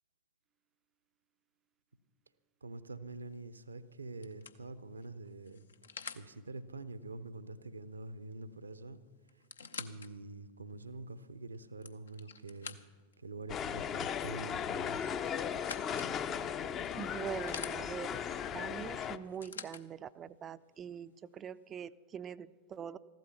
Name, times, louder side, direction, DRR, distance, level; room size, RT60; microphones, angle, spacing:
voice 1, 2.6-5.6 6.2-9.0 9.7-12.8 13.2-15.0, right 2 dB, 75° right, 15 dB, 0.7 m, -46 dB
sound 1, 3.3-3.6 4.2-6.3 8.3-8.4 8.7-8.8 9.3-10.1 10.7-10.8 11.5-13.1 14.8-16.1 16.8-17.8 19.0-19.8 20.8-20.9, left 5 dB, 70° left, 0.7 m, -47 dB
sound 2, 13.5-19.2, left 8 dB, 30° left, 0.6 m, -37 dB
voice 2, 17.0-18.2 18.5-23.0, right 8 dB, 25° right, 15 dB, 0.4 m, -43 dB
14.5 x 12.0 x 5.8 m, 1.5 s
figure-of-eight pair, 90°, 0 cm